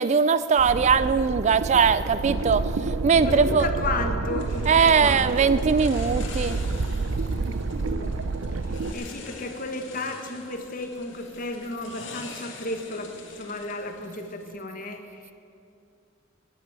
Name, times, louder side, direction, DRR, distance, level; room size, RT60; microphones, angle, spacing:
voice 1, 0.0-2.7 3.0-3.7 4.7-6.6, right 5 dB, 35° right, 15 dB, 0.3 m, -20 dB
sound 1, 0.6-8.9, right 3 dB, 85° right, 0.6 m, -29 dB
voice 2, 3.3-5.6 7.8-8.2 8.7-15.3, left 2 dB, 45° left, 5 dB, 1.3 m, -33 dB
sound 2, 4.4-14.5, left 4 dB, 65° left, 1.9 m, -45 dB
13.0 x 8.9 x 8.7 m, 2.5 s
head